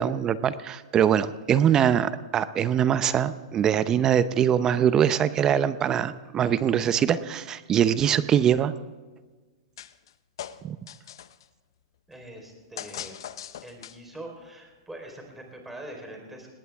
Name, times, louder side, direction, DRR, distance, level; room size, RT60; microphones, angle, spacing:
voice 1, 0.0-8.7 10.6-10.8, right 9 dB, 25° right, 14 dB, 0.7 m, -23 dB
sound 1, 9.8-10.1 10.4-11.5 12.8-14.2, left 10 dB, 75° left, 0.8 m, -40 dB
voice 2, 12.1-13.2 13.6-16.5, right 1 dB, 5° right, 2 dB, 4.1 m, -43 dB
19.0 x 18.5 x 3.6 m, 1.4 s
hypercardioid pair, 135°, 2 cm